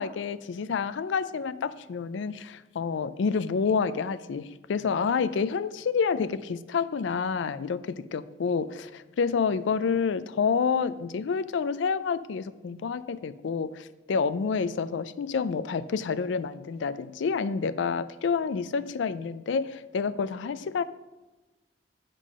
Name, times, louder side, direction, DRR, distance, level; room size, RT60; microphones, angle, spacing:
voice 1, 0.0-20.8, left 5 dB, 75° left, 15 dB, 0.4 m, -28 dB
8.2 x 3.8 x 6.1 m, 1.1 s
head